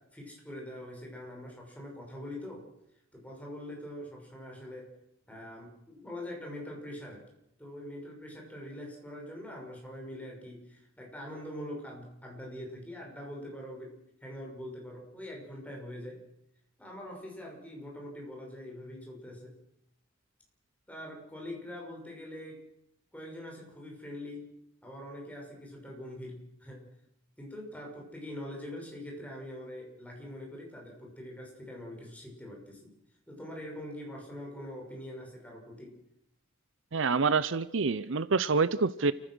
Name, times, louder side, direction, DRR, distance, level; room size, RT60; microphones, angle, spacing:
voice 1, 0.0-2.7 3.1-4.9 5.3-7.2 7.6-16.2 16.8-19.6 20.9-22.6 23.1-24.5 24.8-26.9 27.4-32.9 33.3-36.0, left 1 dB, 5° left, 0 dB, 6.1 m, -43 dB
voice 2, 36.9-39.1, right 4 dB, 70° right, 16 dB, 0.7 m, -27 dB
29.0 x 15.5 x 6.3 m, 0.79 s
head